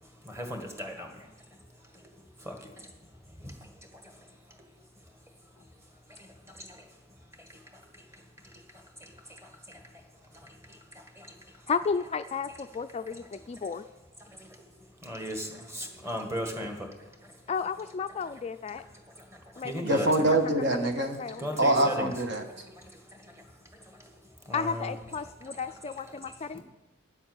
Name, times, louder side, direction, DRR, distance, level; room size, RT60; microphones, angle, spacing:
voice 1, 0.2-1.1 2.4-2.5 3.4-3.5 11.2-11.3 15.0-16.8 19.6-20.3 21.4-22.1 24.5-25.0, equal, 15° right, 3 dB, 1.6 m, -35 dB
voice 2, 11.7-13.8 17.5-18.8 19.6-19.7 21.0-21.5 21.8-21.9 24.5-26.6, left 5 dB, 30° left, 10 dB, 0.3 m, -33 dB
voice 3, 19.8-21.2 21.6-22.4, right 1 dB, 60° right, 5 dB, 1.3 m, -24 dB
9.6 x 8.0 x 7.8 m, 1.0 s
head